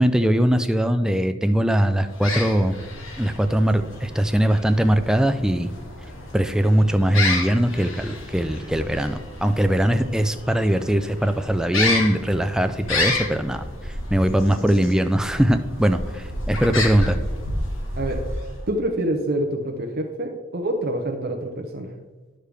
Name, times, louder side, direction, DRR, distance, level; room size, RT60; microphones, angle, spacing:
voice 1, 0.0-2.7 3.2-5.7 6.3-17.2, right 1 dB, 5° right, 8 dB, 0.4 m, -21 dB
sound 1, 2.0-18.8, left 2 dB, 65° left, 1.5 m, -30 dB
voice 2, 18.0-21.9, right 1 dB, 45° right, 2 dB, 0.7 m, -27 dB
11.0 x 6.5 x 3.4 m, 1.2 s
head